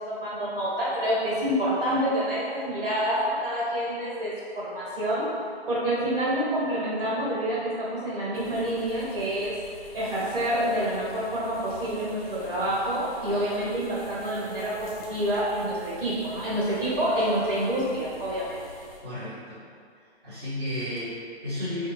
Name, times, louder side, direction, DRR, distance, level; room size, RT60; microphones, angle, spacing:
voice 1, 0.1-5.3 5.7-9.5 9.9-18.6, equal, 55° right, -8 dB, 1.5 m, -27 dB
sound 1, 8.3-19.0, equal, 35° left, 0.6 m, -47 dB
voice 2, 19.0-19.6 20.2-21.9, left 1 dB, 25° right, -15 dB, 0.8 m, -33 dB
3.7 x 2.3 x 3.0 m, 2.2 s
hypercardioid pair, 170°, 32 cm